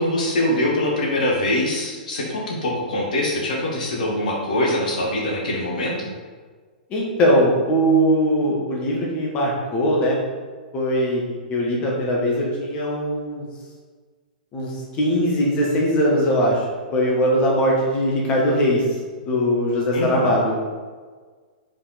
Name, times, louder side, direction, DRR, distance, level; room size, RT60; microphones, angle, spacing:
voice 1, 0.0-6.1 19.9-20.3, left 1 dB, 60° left, -3 dB, 1.5 m, -23 dB
voice 2, 6.9-10.1 10.7-11.2 11.5-13.4 14.5-14.7 15.0-16.6 16.9-18.8 19.2-20.5, equal, 25° left, -3 dB, 1.5 m, -20 dB
5.6 x 5.3 x 4.2 m, 1.5 s
figure-of-eight pair, 105°, 5 cm